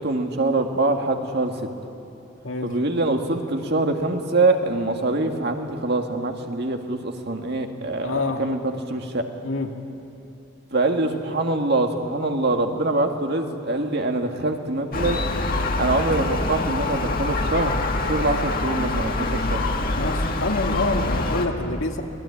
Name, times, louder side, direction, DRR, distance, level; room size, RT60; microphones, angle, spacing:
voice 1, 0.0-1.7 2.6-9.3 10.7-15.3 15.8-17.8 18.0-19.6, right 2 dB, 55° right, 4 dB, 1.9 m, -24 dB
voice 2, 2.4-2.7 8.0-8.4 9.4-9.7 20.0-22.0, left 2 dB, 75° left, 3 dB, 2.1 m, -26 dB
Gull seagull, 14.9-21.5, left 2 dB, 45° left, 1.7 m, -25 dB
26.0 x 20.0 x 9.9 m, 2.8 s
head